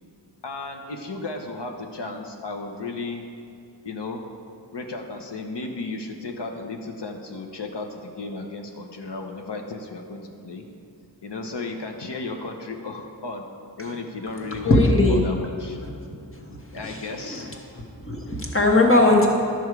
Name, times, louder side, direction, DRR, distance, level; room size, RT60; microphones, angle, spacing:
voice 1, 0.4-3.2 3.8-4.2 4.7-10.6 11.2-13.5 13.8-14.8 15.1-15.8 16.7-17.5, left 3 dB, 65° left, 3 dB, 1.0 m, -34 dB
voice 2, 14.6-15.2 16.4-16.6 16.8-17.0 17.2-17.4 18.0-19.3, left 2 dB, 30° left, 0 dB, 1.3 m, -18 dB
11.5 x 6.3 x 4.7 m, 2.6 s
wide cardioid pair, 90°, 45 cm